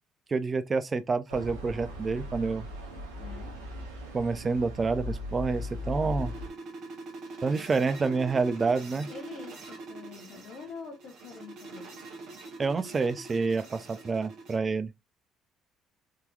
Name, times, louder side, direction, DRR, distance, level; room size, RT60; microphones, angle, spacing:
voice 1, 0.3-2.7 4.1-6.3 7.4-9.1 12.6-14.9, right 4 dB, 35° right, 0.4 m, -28 dB
sound 1, 1.3-6.5, left 1 dB, 90° right, 0.8 m, -38 dB
voice 2, 3.2-3.5 8.8-11.9, left 5 dB, 60° left, 0.9 m, -45 dB
sound 2, 5.1-14.6, right 3 dB, 60° right, 1.2 m, -44 dB
3.7 x 2.9 x 2.2 m
hypercardioid pair, 55°, 0 cm